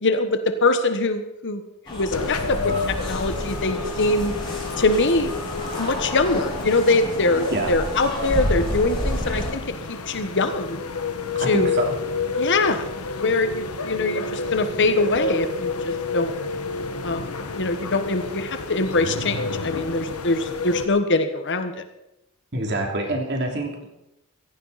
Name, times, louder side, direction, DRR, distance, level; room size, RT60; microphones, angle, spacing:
voice 1, 0.0-1.6 1.9-4.3 4.8-5.3 5.8-9.6 9.9-10.8 11.5-11.7 12.4-12.9 13.2-16.3 17.0-17.3 17.6-21.8, left 2 dB, 55° left, 9 dB, 1.3 m, -23 dB
sound 1, 1.9-9.5, left 1 dB, 20° left, 4.9 m, -30 dB
sound 2, 2.1-20.9, left 4 dB, 85° left, 1.4 m, -30 dB
voice 2, 11.4-11.9 22.5-23.9, right 2 dB, 50° right, 1 dB, 3.0 m, -26 dB
16.5 x 15.0 x 4.2 m, 0.88 s
head